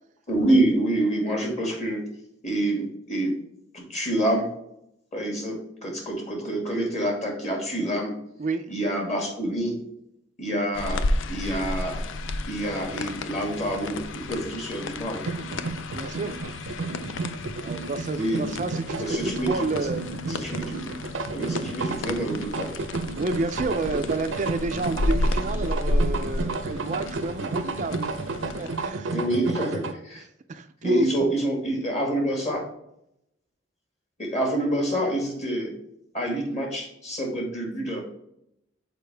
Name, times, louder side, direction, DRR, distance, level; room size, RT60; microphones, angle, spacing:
voice 1, 0.3-2.1 2.4-3.3 3.7-4.5 5.1-8.2 8.7-9.8 10.4-11.0 11.3-12.0 12.5-15.2 18.1-18.4 19.0-19.5 20.3-20.8 21.3-22.8 29.1-30.2 30.8-32.7 34.2-35.7 36.1-38.0, right 1 dB, 35° left, 0 dB, 2.1 m, -27 dB
sound 1, 10.7-28.9, left 2 dB, 85° left, 0.5 m, -32 dB
sound 2, 15.2-29.9, right 3 dB, 90° right, 0.6 m, -32 dB
voice 2, 15.9-16.4 17.6-20.4 23.2-28.1 28.4-29.1 30.5-31.3, right 3 dB, 40° right, 8 dB, 0.4 m, -30 dB
6.7 x 4.6 x 3.3 m, 0.79 s
head